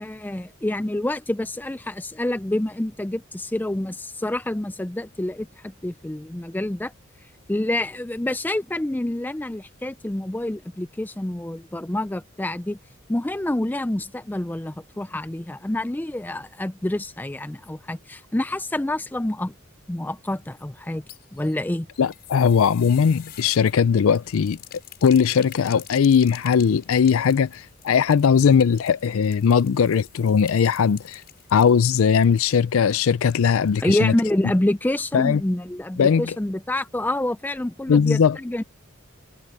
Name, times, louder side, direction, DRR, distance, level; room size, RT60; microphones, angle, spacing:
voice 1, 0.0-6.9 7.5-12.8 13.1-19.5 19.9-21.0 21.3-21.9 33.8-38.6, left 1 dB, 10° left, 0.4 m, -27 dB
sound 1, 20.8-33.8 34.1-34.2 34.5-34.6, left 11 dB, 45° left, 6.1 m, -47 dB
voice 2, 22.0-24.6 25.0-31.2 31.5-34.1 35.1-35.4 36.0-36.3 37.9-38.4, left 6 dB, 75° left, 0.4 m, -19 dB
head